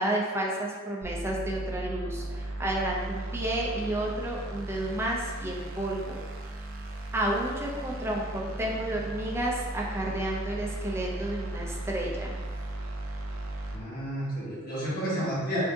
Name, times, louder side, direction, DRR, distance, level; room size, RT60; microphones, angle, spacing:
voice 1, 0.0-6.2 7.1-12.4, right 1 dB, 10° right, -2 dB, 0.5 m, -31 dB
sound 1, 1.0-13.8, right 2 dB, 70° right, 0.5 m, -36 dB
voice 2, 13.7-15.6, equal, 45° left, -8 dB, 1.2 m, -31 dB
3.5 x 2.7 x 3.5 m, 1.5 s
head